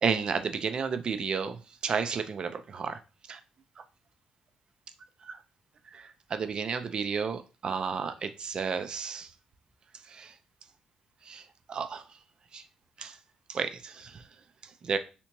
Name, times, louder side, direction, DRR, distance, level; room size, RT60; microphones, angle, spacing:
voice 1, 0.0-3.0 3.3-3.4 5.2-5.4 5.9-9.3 10.0-10.3 11.2-12.0 12.5-12.6 13.0-13.2 13.5-14.2 14.8-15.0, right 6 dB, 45° right, 0.4 m, -32 dB
3.3 x 2.9 x 2.9 m
cardioid pair, 95°, 2 cm